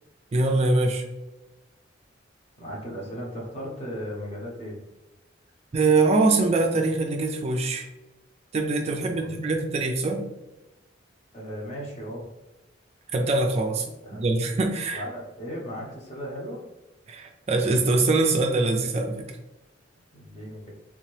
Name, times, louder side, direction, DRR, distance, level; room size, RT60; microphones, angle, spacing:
voice 1, 0.3-1.0 5.7-7.9 8.5-10.2 13.1-15.0 17.1-19.3, right 3 dB, 35° right, 3 dB, 0.3 m, -23 dB
voice 2, 2.6-4.8 9.1-9.5 11.3-12.3 14.0-14.2 14.9-16.6 20.1-20.7, equal, 35° left, -3 dB, 1.0 m, -36 dB
3.6 x 2.8 x 3.1 m, 1.0 s
head